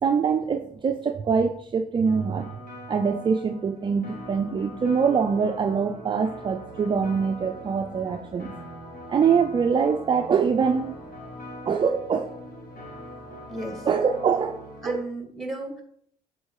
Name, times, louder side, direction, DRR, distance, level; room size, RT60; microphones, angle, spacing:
voice 1, 0.0-2.6 2.9-8.5 9.1-11.0 11.7-12.3 13.8-15.1, right 6 dB, 30° right, 6 dB, 0.5 m, -24 dB
sound 1, 2.0-15.0, equal, 55° left, 2.7 m, -42 dB
voice 2, 13.5-13.9 14.8-15.8, right 2 dB, ahead, 2 dB, 2.2 m, -34 dB
7.2 x 4.5 x 4.8 m, 0.66 s
cardioid pair, 110°, 17 cm